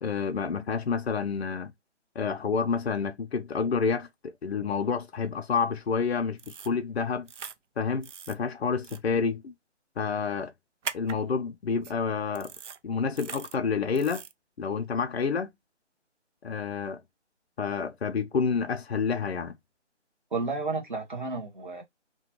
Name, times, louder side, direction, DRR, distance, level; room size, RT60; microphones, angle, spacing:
voice 1, 0.0-1.7 2.2-7.3 7.8-9.5 10.0-10.5 10.9-12.5 12.8-14.2 14.6-15.5 16.4-17.0 17.6-19.6, left 5 dB, 60° left, 0.5 m, -29 dB
sound 1, 6.4-6.7 7.3-7.5 8.0-8.3 8.8-9.0 10.8-11.1 11.8-11.9 12.3-12.8 13.1-13.5 13.9-14.3, right 7 dB, 80° right, 0.5 m, -40 dB
voice 2, 20.3-21.8, right 3 dB, 40° right, 1.0 m, -32 dB
3.0 x 2.2 x 2.9 m
figure-of-eight pair, 170°, 36 cm